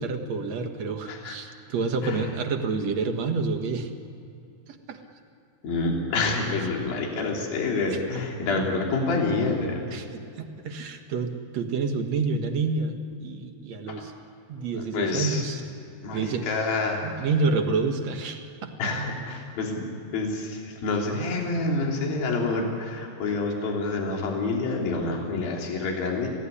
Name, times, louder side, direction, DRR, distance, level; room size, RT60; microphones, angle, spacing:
voice 1, 0.0-3.9 4.7-5.0 7.9-8.0 9.9-14.1 14.5-15.6 16.1-16.5 17.0-18.7, right 4 dB, 55° right, 4 dB, 2.4 m, -28 dB
voice 2, 5.6-9.9 13.9-14.0 14.7-15.4 16.0-17.1 18.8-19.9 20.1-26.3, left 3 dB, 65° left, 0 dB, 4.9 m, -27 dB
27.5 x 17.5 x 10.0 m, 2.7 s
omnidirectional pair, 4.5 m